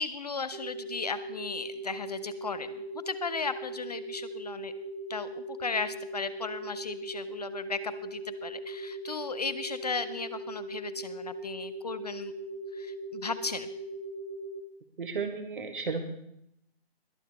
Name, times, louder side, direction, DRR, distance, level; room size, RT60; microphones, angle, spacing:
voice 1, 0.0-4.7 5.1-12.3 12.7-13.7, left 4 dB, 40° left, 13 dB, 0.5 m, -36 dB
sound 1, 0.5-14.6, right 2 dB, 35° right, 1.7 m, -39 dB
voice 2, 15.0-16.0, right 4 dB, 55° right, 5 dB, 1.5 m, -33 dB
21.0 x 7.3 x 4.2 m, 0.77 s
figure-of-eight pair, 140°, 32 cm